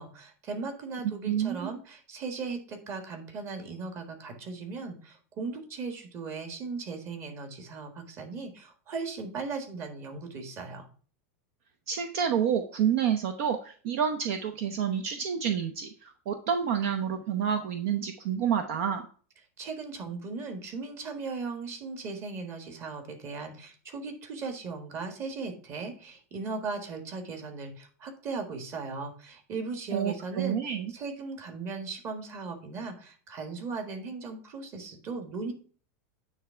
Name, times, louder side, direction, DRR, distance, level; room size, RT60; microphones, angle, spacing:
voice 1, 0.0-10.9 19.6-35.5, right 4 dB, 30° right, 5 dB, 1.6 m, -38 dB
voice 2, 1.2-1.7 11.9-19.0 29.9-30.9, right 8 dB, 60° right, 6 dB, 0.8 m, -29 dB
9.2 x 3.5 x 5.7 m, 0.41 s
supercardioid pair, 150°, 8 cm